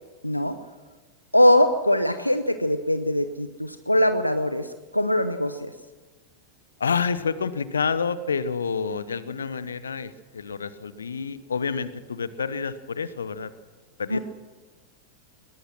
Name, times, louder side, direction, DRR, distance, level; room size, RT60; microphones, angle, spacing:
voice 1, 0.2-0.6 1.3-5.7 14.1-14.2, left 1 dB, 90° left, 10 dB, 0.8 m, -22 dB
voice 2, 6.8-13.5 14.0-14.2, left 5 dB, 70° left, 15 dB, 1.0 m, -28 dB
21.5 x 20.0 x 6.1 m, 1.3 s
figure-of-eight pair, 90°, 0 cm